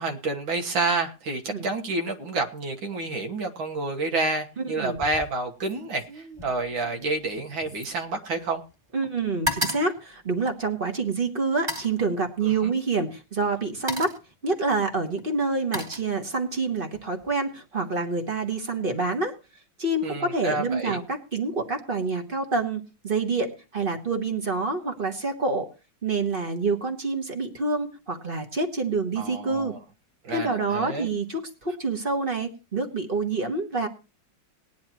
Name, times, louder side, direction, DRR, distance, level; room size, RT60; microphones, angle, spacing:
voice 1, 0.0-8.6 12.4-12.7 20.0-21.0 29.2-29.8 30.2-31.1, right 3 dB, 80° right, 3 dB, 2.2 m, -29 dB
voice 2, 4.6-5.0 8.9-14.1 14.4-19.3 19.8-25.7 26.0-29.7 30.3-33.9, right 3 dB, 30° right, 5 dB, 1.4 m, -27 dB
sound 1, 4.9-5.3 5.6-8.7 9.0-10.9 11.5-12.0 13.0-13.2 13.6-14.3 15.2-16.6 16.9-17.3, left 1 dB, 15° right, 2.3 m, -35 dB
18.5 x 10.5 x 3.0 m, 0.30 s
omnidirectional pair, 2.1 m